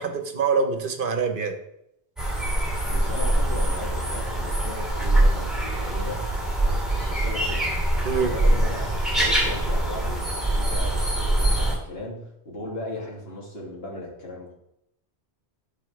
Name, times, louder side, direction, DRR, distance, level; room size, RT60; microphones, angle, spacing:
voice 1, 0.0-1.6 8.0-8.4, right 5 dB, 55° right, 7 dB, 1.0 m, -25 dB
sound 1, 2.2-11.8, right 1 dB, ahead, 2.4 m, -24 dB
voice 2, 2.9-6.2 6.6-7.8 8.1-14.5, left 1 dB, 65° left, -3 dB, 2.3 m, -36 dB
10.0 x 5.7 x 3.2 m, 0.80 s
omnidirectional pair, 1.1 m